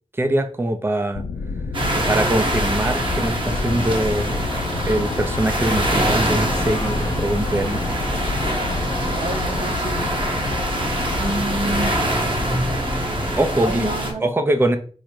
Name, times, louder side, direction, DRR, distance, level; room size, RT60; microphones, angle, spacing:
voice 1, 0.1-1.2 2.1-4.4 4.8-7.8 13.4-13.9 14.2-14.8, right 1 dB, 20° right, 7 dB, 0.5 m, -22 dB
sound 1, 1.1-14.1, left 4 dB, 90° left, 0.4 m, -29 dB
sound 2, 1.7-14.1, right 1 dB, 45° right, 1.1 m, -24 dB
sound 3, 3.5-11.6, left 2 dB, 40° left, 0.6 m, -36 dB
voice 2, 9.1-10.1 11.1-12.0 13.6-14.2, right 2 dB, 80° right, 5 dB, 0.7 m, -28 dB
4.9 x 2.1 x 4.5 m, 0.41 s
wide cardioid pair, 55°, 12 cm